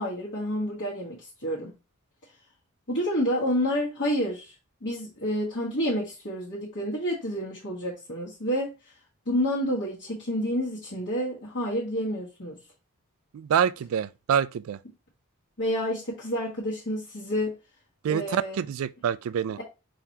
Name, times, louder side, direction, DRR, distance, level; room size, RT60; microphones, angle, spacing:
voice 1, 0.0-1.7 2.9-4.5 4.8-8.7 9.2-12.6 15.6-17.6 18.1-18.6, equal, 55° left, 1.4 m, -29 dB
voice 2, 13.3-14.8 18.0-19.6, right 8 dB, 70° right, 0.3 m, -26 dB
4.5 x 3.9 x 2.8 m
head